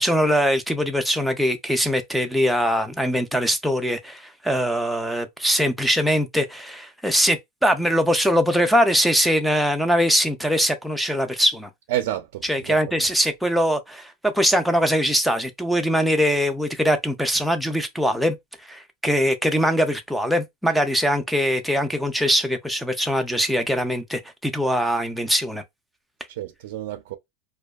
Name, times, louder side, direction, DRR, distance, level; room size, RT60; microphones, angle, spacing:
voice 1, 0.0-11.7 12.5-18.4 18.6-25.6, equal, ahead, 0.3 m, -22 dB
voice 2, 11.9-13.1 26.3-27.1, right 13 dB, 70° right, 0.4 m, -30 dB
2.6 x 2.2 x 2.2 m
supercardioid pair, 160°, 0 cm